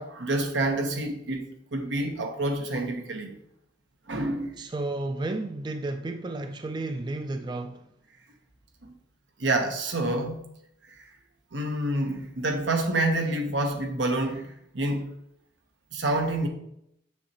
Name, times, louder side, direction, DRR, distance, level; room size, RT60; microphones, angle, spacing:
voice 1, 0.0-3.3 4.1-4.6 8.8-8.9 9.4-10.4 11.5-15.1 15.9-16.5, right 2 dB, 85° right, 1.1 m, -28 dB
voice 2, 4.6-7.8, right 2 dB, 25° right, 0.3 m, -32 dB
7.0 x 6.4 x 3.0 m
head